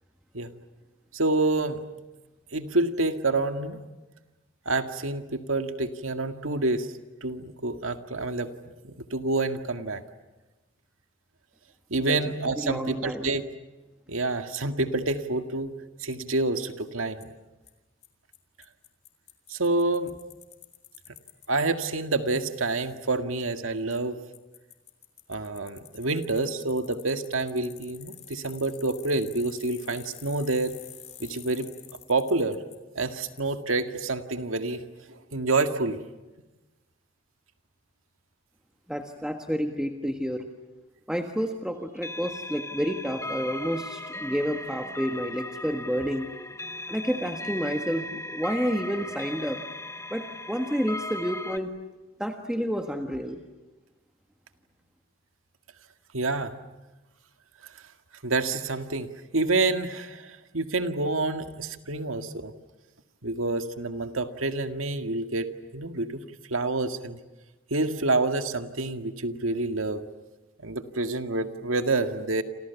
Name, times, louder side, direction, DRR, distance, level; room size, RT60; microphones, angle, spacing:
voice 1, 1.1-1.8 2.5-3.8 4.7-6.9 7.2-10.0 11.9-13.5 14.1-15.7 16.0-17.3 19.5-20.2 21.5-24.2 25.3-30.8 31.2-31.7 32.1-32.6 33.0-34.8 35.3-36.0 56.1-56.5 58.2-59.1 59.3-62.5 63.2-66.2 66.5-67.2 67.7-70.0 70.6-72.4, right 2 dB, 90° right, 7 dB, 2.0 m, -28 dB
voice 2, 12.6-13.3 38.9-40.5 41.1-46.3 46.9-49.6 50.1-51.7 52.2-53.4, equal, 5° right, 4 dB, 1.5 m, -30 dB
Bicycle, 16.1-16.2 17.2-17.3 17.7-17.8 18.0-18.1 18.3-18.4 18.6-21.5 21.8-21.9 23.9-24.0 24.3-32.8 33.3-33.4, left 10 dB, 35° left, 3.1 m, -48 dB
sound 1, 42.0-51.6, left 1 dB, 15° left, 1.0 m, -37 dB
29.0 x 27.5 x 7.1 m, 1.1 s
head